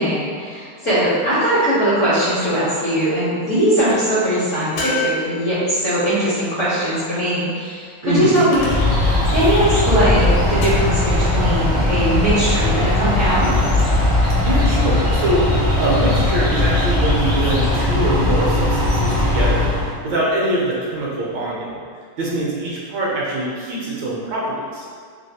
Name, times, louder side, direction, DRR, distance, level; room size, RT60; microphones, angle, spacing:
voice 1, 0.0-8.7 9.3-13.5, right 1 dB, 55° left, -11 dB, 0.9 m, -20 dB
sound 1, 4.8-5.9 8.4-9.1 10.6-11.2 13.4-14.1, left 2 dB, 70° left, 1.3 m, -29 dB
voice 2, 8.0-8.4 14.4-15.5 15.8-21.7 22.2-24.9, right 1 dB, 75° right, -5 dB, 1.2 m, -23 dB
sound 2, 8.5-19.9, left 2 dB, 40° right, 0.4 m, -18 dB
3.3 x 2.4 x 2.7 m, 2.1 s
omnidirectional pair, 2.2 m